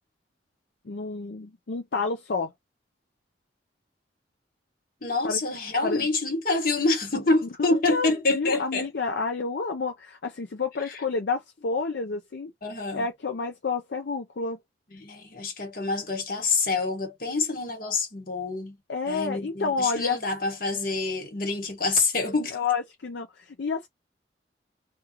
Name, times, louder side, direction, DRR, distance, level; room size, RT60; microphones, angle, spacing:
voice 1, 0.9-2.5 5.2-5.4 5.8-6.1 7.6-12.5 12.9-14.6 18.9-20.2 22.5-23.9, left 4 dB, 70° left, 0.5 m, -29 dB
voice 2, 5.0-8.9 10.8-10.9 12.6-13.1 14.9-18.8 19.0-22.6, left 3 dB, 50° left, 1.4 m, -27 dB
3.4 x 2.3 x 3.0 m
head